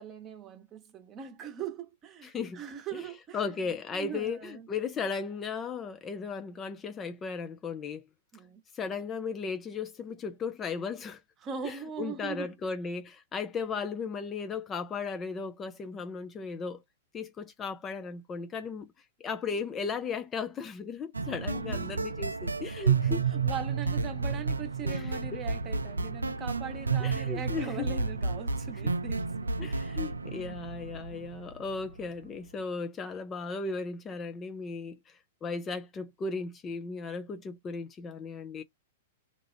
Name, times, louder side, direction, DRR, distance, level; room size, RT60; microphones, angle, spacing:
voice 1, 0.0-4.7 8.3-8.6 11.4-12.5 21.5-22.1 22.8-30.0 30.3-31.3 34.8-34.9, right 6 dB, 25° right, 1.0 m, -41 dB
voice 2, 2.2-2.6 2.9-8.1 8.7-11.2 11.6-16.8 17.1-18.9 19.2-23.2 24.8-25.4 27.0-27.9 29.6-38.6, left 5 dB, 20° left, 0.5 m, -36 dB
sound 1, 21.1-32.1, right 4 dB, 80° right, 0.3 m, -31 dB
2.6 x 2.3 x 3.4 m
figure-of-eight pair, 105°, 0 cm